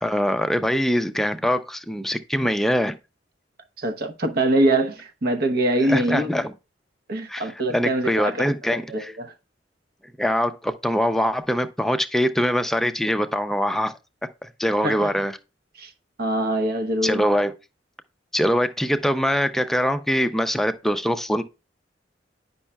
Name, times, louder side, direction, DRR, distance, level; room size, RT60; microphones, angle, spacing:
voice 1, 0.0-2.9 5.9-6.5 7.3-7.4 7.7-9.1 10.2-13.9 14.4-15.4 17.0-17.6 18.3-21.4, equal, ahead, 0.5 m, -23 dB
voice 2, 3.8-6.4 7.1-8.4 8.9-9.3 14.8-15.1 15.8-15.9 16.2-17.2, right 1 dB, 55° right, 0.9 m, -23 dB
9.8 x 5.4 x 2.2 m
head